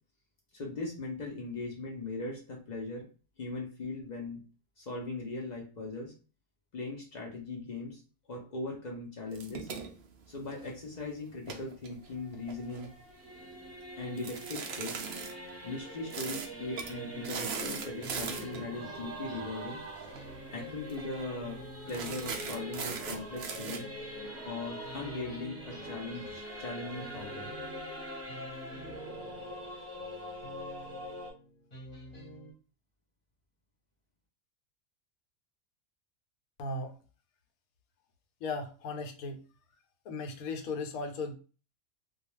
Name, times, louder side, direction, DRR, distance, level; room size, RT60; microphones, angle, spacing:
voice 1, 0.5-3.1 3.4-4.4 4.8-6.1 6.7-8.0 8.3-9.7 10.3-12.9 14.0-15.0 15.6-19.8 20.5-23.9 24.5-27.5, left 2 dB, 55° left, 0 dB, 0.4 m, -39 dB
sound 1, 9.3-10.8 11.3-12.9 14.2-15.3 16.1-16.5 16.8-16.9 17.2-18.7 19.9-20.2 20.5-20.6 20.9-21.2 21.9-23.8, right 5 dB, 80° right, 0.5 m, -39 dB
Singing / Musical instrument, 11.9-31.3, equal, 15° right, 0.8 m, -44 dB
sound 2, 17.1-32.5, right 1 dB, 35° left, 0.9 m, -51 dB
voice 2, 36.6-37.0 38.4-39.4 40.0-41.3, left 3 dB, 85° left, 5 dB, 1.0 m, -36 dB
2.3 x 2.2 x 3.0 m, 0.35 s
omnidirectional pair, 1.5 m